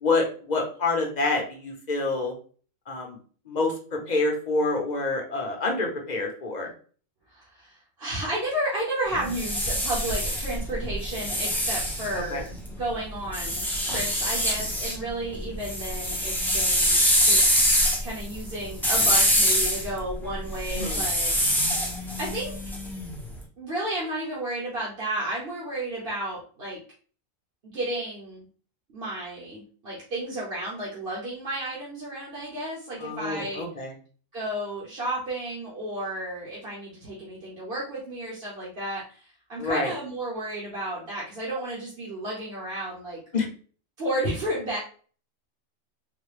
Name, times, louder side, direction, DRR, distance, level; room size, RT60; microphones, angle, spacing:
voice 1, 0.0-2.3 2.9-3.2 3.5-6.7 12.1-12.4 20.7-21.0 33.0-33.9 39.6-39.9 43.3-43.5, left 3 dB, 40° left, 2 dB, 0.8 m, -27 dB
voice 2, 7.3-12.5 12.8-17.6 18.0-21.3 21.9-22.6 23.6-26.8 27.6-28.5 28.9-33.6 34.3-43.2 44.0-44.8, right 1 dB, 45° right, -6 dB, 1.2 m, -32 dB
sound 1, 9.1-12.7 13.3-15.0 15.3-23.2, equal, ahead, 0.6 m, -24 dB
3.9 x 2.2 x 3.3 m, 0.41 s
omnidirectional pair, 1.4 m